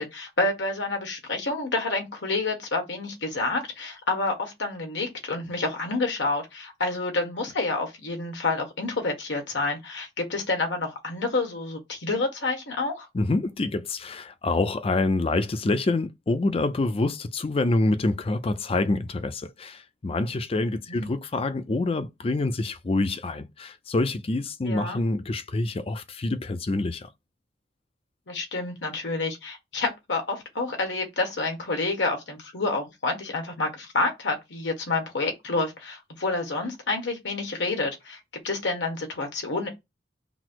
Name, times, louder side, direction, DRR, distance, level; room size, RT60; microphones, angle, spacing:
voice 1, 0.0-13.1 20.9-21.1 24.6-25.0 28.3-39.7, left 3 dB, 85° left, 1.4 m, -28 dB
voice 2, 13.1-27.1, left 2 dB, 30° left, 0.4 m, -26 dB
5.9 x 2.0 x 4.5 m
head